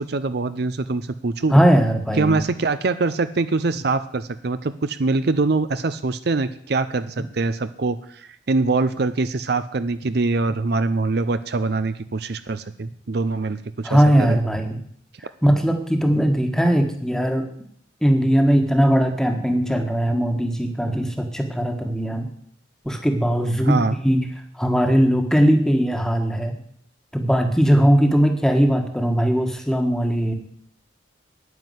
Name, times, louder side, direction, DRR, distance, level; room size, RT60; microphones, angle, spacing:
voice 1, 0.0-1.5 2.2-14.4 23.6-24.0, right 3 dB, 60° right, 12 dB, 0.6 m, -23 dB
voice 2, 1.5-2.4 13.8-14.8 15.4-17.5 18.0-22.3 22.8-24.3 24.5-26.6 27.1-30.3, equal, 5° left, 5 dB, 1.4 m, -19 dB
9.6 x 9.5 x 8.0 m, 0.64 s
head